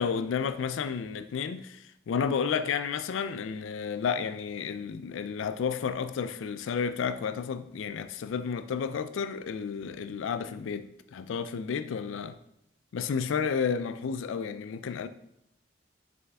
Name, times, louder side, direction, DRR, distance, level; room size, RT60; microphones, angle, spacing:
voice 1, 0.0-12.4 12.9-15.1, left 6 dB, 85° left, 0.4 m, -31 dB
6.2 x 4.7 x 3.5 m
head